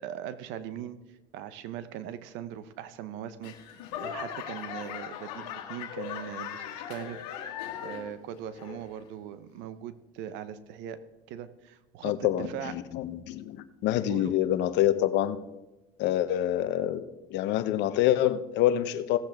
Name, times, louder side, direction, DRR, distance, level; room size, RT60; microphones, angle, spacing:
voice 1, 0.0-7.5 7.8-11.0 11.3-12.7 14.1-14.3, right 10 dB, 70° right, 13 dB, 0.9 m, -40 dB
Laughter / Clapping / Crowd, 3.4-8.2 8.5-9.1 9.6-9.7, left 9 dB, 85° left, 1.5 m, -39 dB
voice 2, 12.0-15.4 16.0-19.2, left 12 dB, 65° left, 13 dB, 0.8 m, -26 dB
17.5 x 7.6 x 3.5 m, 1.0 s
supercardioid pair, 95°, 20 cm